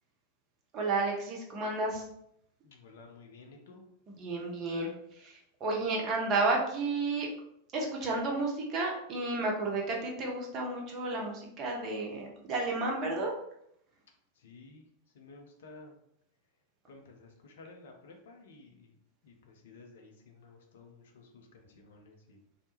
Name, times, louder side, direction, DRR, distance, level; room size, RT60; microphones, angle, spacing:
voice 1, 0.7-2.0 4.1-4.9 5.2-7.3 7.7-13.3, right 3 dB, 35° right, -1 dB, 0.6 m, -32 dB
voice 2, 2.6-3.8 14.4-14.9 15.1-16.0 16.9-18.9 19.2-22.4, left 3 dB, 60° left, 2 dB, 0.4 m, -53 dB
2.1 x 2.0 x 2.9 m, 0.73 s
figure-of-eight pair, 90°, 0 cm